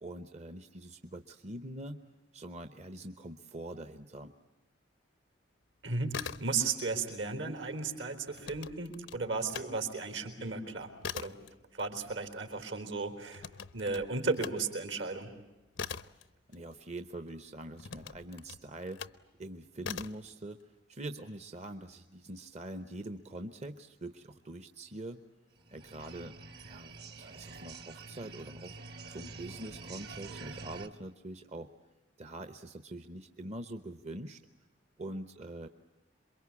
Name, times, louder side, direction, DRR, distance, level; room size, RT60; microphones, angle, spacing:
voice 1, 0.0-2.0 2.3-4.3 16.5-19.0 19.4-20.6 20.9-25.2 25.7-26.3 26.7-28.8 29.1-31.7 32.2-34.4 35.0-35.7, right 1 dB, 35° right, 9 dB, 0.9 m, -44 dB
voice 2, 5.8-11.4 11.7-13.5 13.7-15.3, right 4 dB, 75° right, 7 dB, 4.0 m, -35 dB
sound 1, 5.9-6.9 7.2-9.7 10.1-17.1 17.8-19.2 19.8-20.3, left 6 dB, 75° left, 0.8 m, -43 dB
sound 2, 25.5-30.9, right 3 dB, 60° right, 1.8 m, -47 dB
27.5 x 23.0 x 8.5 m, 1.1 s
head